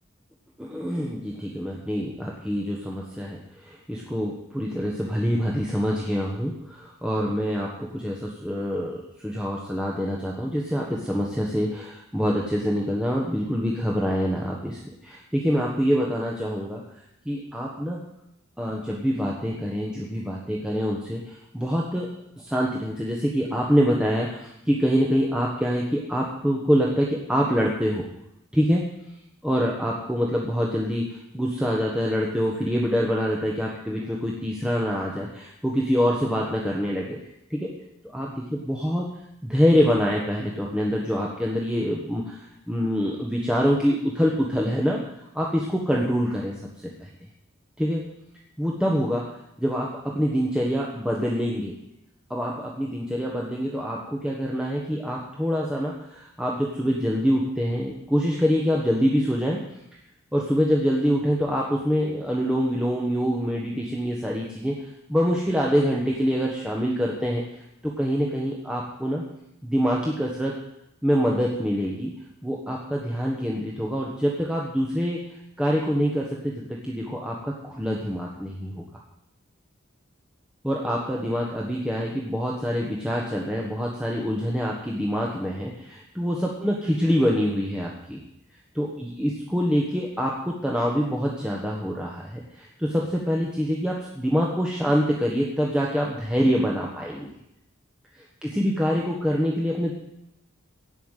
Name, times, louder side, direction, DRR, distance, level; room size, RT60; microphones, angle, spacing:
voice 1, 0.6-16.8 17.2-18.0 18.6-28.1 28.5-28.9 29.4-37.2 37.5-37.8 38.1-39.1 39.4-45.0 45.3-46.5 46.8-47.1 47.8-48.1 48.6-51.7 52.3-59.6 60.3-67.4 67.8-69.2 69.6-70.5 71.0-72.1 72.4-75.2 75.6-78.8 80.6-88.2 88.7-97.3 98.1-99.9, equal, 5° right, -3 dB, 1.3 m, -25 dB
16.0 x 5.7 x 9.1 m, 0.81 s
head